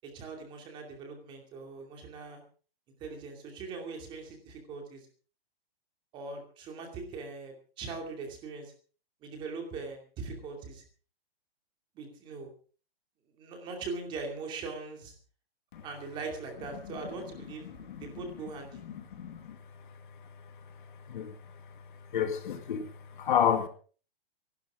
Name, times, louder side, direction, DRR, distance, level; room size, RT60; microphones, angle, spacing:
voice 1, 0.0-2.4 3.0-5.1 6.1-8.7 9.2-10.8 11.9-12.5 13.4-15.1 15.8-18.8, right 4 dB, 15° right, 2.6 m, -41 dB
voice 2, 18.9-19.6 21.1-21.3 22.1-22.9 23.2-23.7, left 8 dB, 55° left, 2.1 m, -29 dB
26.0 x 12.0 x 3.7 m
hypercardioid pair, 175°, 31 cm